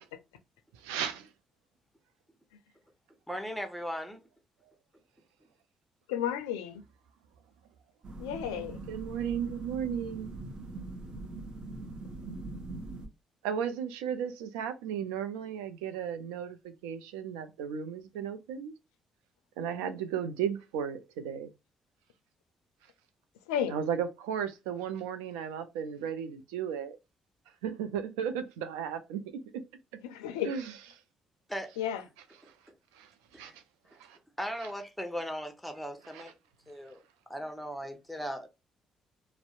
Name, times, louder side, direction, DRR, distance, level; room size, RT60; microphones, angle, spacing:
voice 1, 0.8-1.3 8.9-10.4 13.4-18.7 19.6-21.5 23.7-27.0 27.6-29.2 30.5-30.7 32.9-33.1 33.3-33.5 34.0-34.2 36.1-36.2, right 8 dB, 80° right, 0.4 m, -35 dB
voice 2, 3.3-4.2 31.5-31.7 33.3-33.6 34.4-36.3 36.7-37.0 37.3-38.5, equal, ahead, 0.8 m, -38 dB
voice 3, 6.1-6.8 8.2-8.8 23.5-23.8 30.0-30.5 31.8-32.0, left 9 dB, 85° left, 0.4 m, -32 dB
sound 1, 8.0-13.1, right 2 dB, 50° right, 0.7 m, -42 dB
2.6 x 2.0 x 2.4 m
hypercardioid pair, 50°, 2 cm